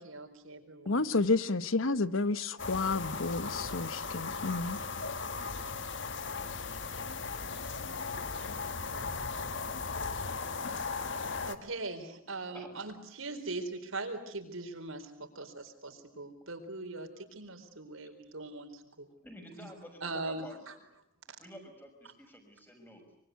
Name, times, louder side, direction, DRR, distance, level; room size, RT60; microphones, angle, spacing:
voice 1, 0.0-1.1 11.5-19.1 19.6-19.7 20.0-20.7, right 2 dB, 80° right, 6 dB, 4.3 m, -41 dB
voice 2, 0.9-4.8, left 3 dB, 75° left, 14 dB, 1.2 m, -30 dB
sound 1, 2.6-11.6, left 4 dB, 60° left, 1.6 m, -37 dB
voice 3, 12.5-12.8 18.0-18.1 19.2-20.0 20.3-20.8 21.4-23.0, equal, 10° left, 4 dB, 6.1 m, -50 dB
25.0 x 24.0 x 9.4 m, 0.73 s
head